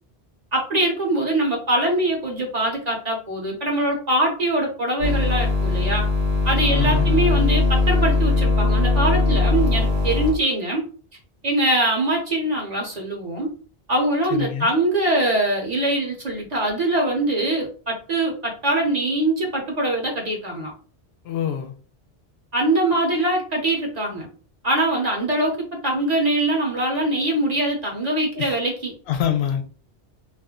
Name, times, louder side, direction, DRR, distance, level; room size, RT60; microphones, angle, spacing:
voice 1, 0.5-6.1 6.4-10.8 11.4-13.5 13.9-20.7 22.5-24.3 24.6-25.6 25.8-28.9, right 1 dB, 45° right, 0.8 m, -23 dB
sound 1, 5.0-10.3, left 3 dB, 75° right, 1.1 m, -20 dB
voice 2, 6.7-7.1 14.3-14.7 21.2-21.7 28.4-28.6 29.1-29.6, left 9 dB, 75° left, 0.8 m, -25 dB
2.4 x 2.1 x 3.6 m
omnidirectional pair, 1.1 m